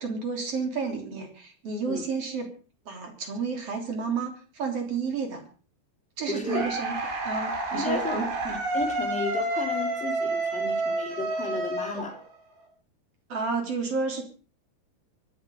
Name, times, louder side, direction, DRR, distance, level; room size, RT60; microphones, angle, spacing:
voice 1, 0.0-2.5 2.9-5.4 6.2-7.0 7.2-8.3 13.3-14.2, right 5 dB, 40° right, 4 dB, 4.0 m, -31 dB
voice 2, 6.2-6.7 7.7-12.2, left 3 dB, ahead, -1 dB, 3.1 m, -34 dB
sound 1, 6.5-12.6, right 2 dB, 80° right, 6.3 m, -29 dB
24.0 x 9.1 x 5.3 m, 0.38 s
omnidirectional pair, 4.7 m